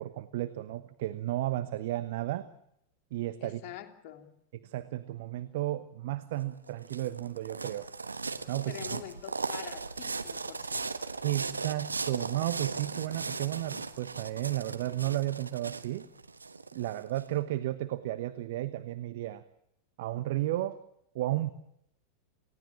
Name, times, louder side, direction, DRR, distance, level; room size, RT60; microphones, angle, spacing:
voice 1, 0.0-2.5 3.1-3.6 4.6-7.9 8.5-9.0 11.2-16.0 16.7-19.4 20.0-20.8 21.1-21.5, right 15 dB, 55° right, 12 dB, 1.1 m, -33 dB
voice 2, 3.4-4.3 8.7-10.9, left 13 dB, 45° left, 4 dB, 3.1 m, -45 dB
sound 1, 6.4-17.2, right 4 dB, 80° right, 1.3 m, -37 dB
29.0 x 17.0 x 7.4 m, 0.77 s
figure-of-eight pair, 90°, 0 cm